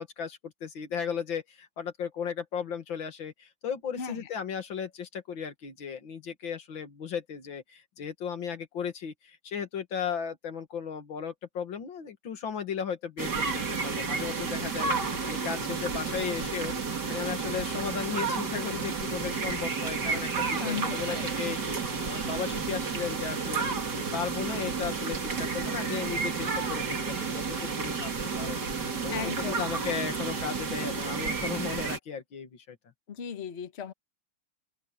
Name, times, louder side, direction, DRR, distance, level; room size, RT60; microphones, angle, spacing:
voice 1, 0.0-16.7 17.1-23.6 23.9-28.1 28.4-28.6 29.0-32.8, left 7 dB, 70° left, 2.5 m, -36 dB
voice 2, 4.0-4.3 20.6-21.2 29.1-29.7 33.1-33.9, left 7 dB, 35° left, 1.3 m, -36 dB
sound 1, 13.2-32.0, right 5 dB, 55° right, 3.1 m, -31 dB
open air
omnidirectional pair, 2.2 m